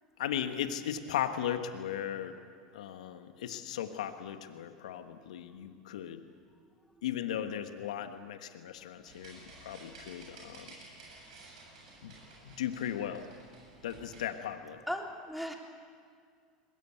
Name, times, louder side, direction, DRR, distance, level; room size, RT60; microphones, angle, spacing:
voice 1, 0.2-2.4 2.7-6.2 7.0-10.7 12.0-12.2 12.4-13.3 13.8-14.8, left 10 dB, 75° left, 9 dB, 1.5 m, -37 dB
sound 1, 9.0-14.2, right 2 dB, 80° right, 7.6 m, -53 dB
voice 2, 14.9-15.5, equal, ahead, 1 dB, 3.7 m, -39 dB
22.5 x 20.5 x 8.3 m, 2.1 s
hypercardioid pair, 90°, 4 cm